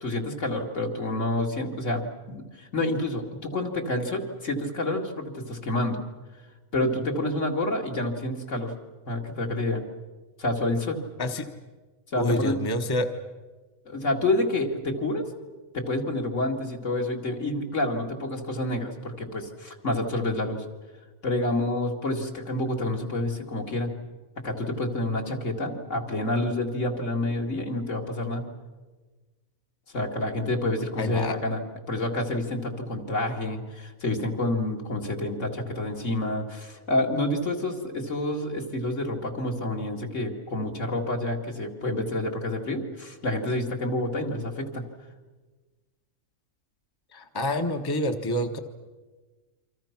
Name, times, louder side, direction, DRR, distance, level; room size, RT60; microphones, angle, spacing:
voice 1, 0.0-6.0 6.7-8.7 9.1-9.8 10.4-11.0 12.1-12.6 13.9-15.3 15.7-20.6 21.2-23.9 24.4-28.4 29.9-31.6 31.9-44.8, left 1 dB, 60° left, 1 dB, 2.7 m, -28 dB
voice 2, 12.2-13.1 31.0-31.4 47.1-48.6, left 1 dB, 20° left, 4 dB, 1.1 m, -27 dB
28.5 x 25.5 x 5.9 m, 1.3 s
omnidirectional pair, 1.4 m